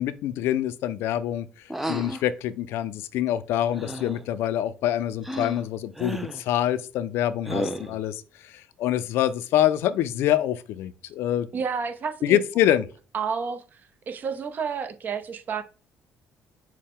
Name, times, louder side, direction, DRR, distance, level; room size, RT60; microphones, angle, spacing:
voice 1, 0.0-1.5 1.9-11.5 12.2-12.9, left 12 dB, 80° left, 0.4 m, -25 dB
sound 1, 1.7-2.2 3.7-4.3 5.2-5.6 6.0-6.4 7.5-8.0, right 1 dB, 5° right, 0.5 m, -32 dB
voice 2, 11.5-12.4 13.1-13.8 14.1-15.6, right 6 dB, 45° right, 0.7 m, -30 dB
6.4 x 2.2 x 3.6 m
cardioid pair, 90°, 4 cm